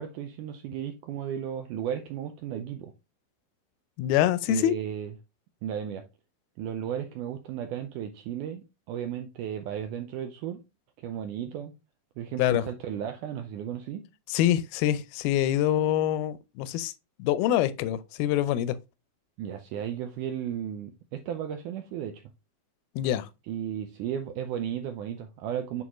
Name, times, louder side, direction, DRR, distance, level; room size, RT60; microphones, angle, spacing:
voice 1, 0.0-2.9 4.5-5.1 5.6-6.0 6.6-10.6 11.0-11.7 12.2-14.0 19.4-22.2 23.5-25.8, right 9 dB, 90° right, 1.8 m, -34 dB
voice 2, 4.0-4.8 12.4-12.7 14.3-16.9 17.2-18.8 23.0-23.3, left 12 dB, 85° left, 2.4 m, -25 dB
8.5 x 3.8 x 3.0 m
omnidirectional pair, 4.3 m